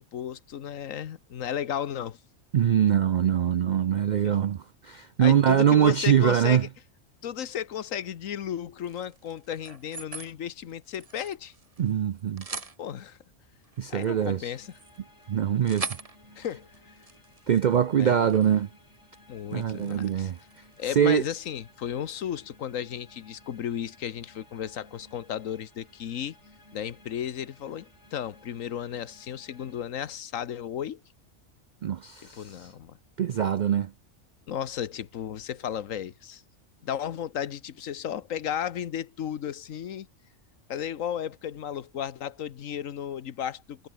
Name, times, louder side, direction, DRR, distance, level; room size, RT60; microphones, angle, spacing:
voice 1, 0.0-2.2 4.2-4.4 5.2-6.7 7.2-11.5 12.8-13.2 13.9-14.7 16.4-16.7 18.0-18.3 19.3-20.3 20.8-26.4 26.7-31.0 32.2-32.9 34.5-36.4 36.8-40.1 40.7-43.9, left 9 dB, 85° left, 1.4 m, -34 dB
voice 2, 2.5-4.6 4.8-6.7 11.8-12.4 13.8-14.5 15.3-16.0 17.5-18.7 19.5-20.4 21.0-21.2 31.8-32.7 33.2-33.9, right 9 dB, 70° right, 0.4 m, -23 dB
sound 1, 8.8-10.3 10.7-11.9 12.2-12.8 13.6-18.6 18.9-19.2 19.5-21.0, right 3 dB, 30° right, 1.5 m, -42 dB
sound 2, 14.5-29.9, left 1 dB, 60° left, 8.2 m, -58 dB
omnidirectional pair, 1.3 m